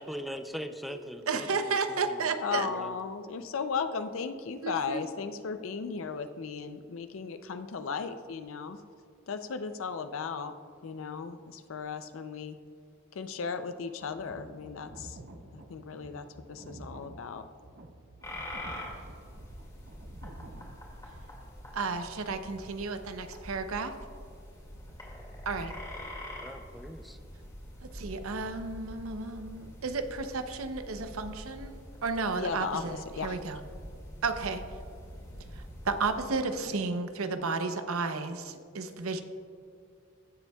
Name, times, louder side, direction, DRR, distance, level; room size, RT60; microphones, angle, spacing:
voice 1, 0.0-3.0 26.4-27.2, equal, ahead, 7 dB, 0.4 m, -41 dB
voice 2, 1.3-2.7 4.6-5.0 21.7-23.9 25.5-25.7 27.8-33.6 34.2-34.6 35.6-39.2, right 4 dB, 85° right, 8 dB, 0.7 m, -33 dB
voice 3, 2.4-8.8 9.3-10.5 10.8-12.6 13.2-15.2 15.5-17.4 32.4-32.8 33.2-33.4, left 5 dB, 70° left, 9 dB, 0.5 m, -36 dB
sound 1, 14.0-21.2, right 1 dB, 50° right, 0.7 m, -49 dB
sound 2, 18.2-36.3, left 1 dB, 20° left, 2.1 m, -45 dB
16.5 x 7.0 x 2.3 m, 2.4 s
head